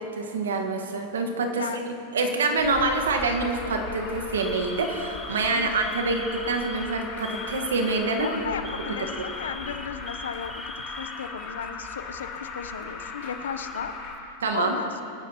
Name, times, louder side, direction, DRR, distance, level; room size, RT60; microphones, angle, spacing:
voice 1, 0.0-1.7 2.1-8.3 14.4-14.8, right 3 dB, 85° right, 4 dB, 1.5 m, -26 dB
Alarm, 1.5-2.0 2.9-3.2 3.6-3.8 4.4-12.0 12.3-12.4 13.3-14.0, equal, ahead, 0.8 m, -42 dB
Alarm 2, 2.6-14.1, left 4 dB, 50° left, 2.9 m, -38 dB
voice 2, 8.2-10.5 11.0-13.9 14.5-14.9, left 7 dB, 85° left, 10 dB, 0.8 m, -34 dB
23.0 x 10.0 x 3.0 m, 2.8 s
hypercardioid pair, 105°, 0 cm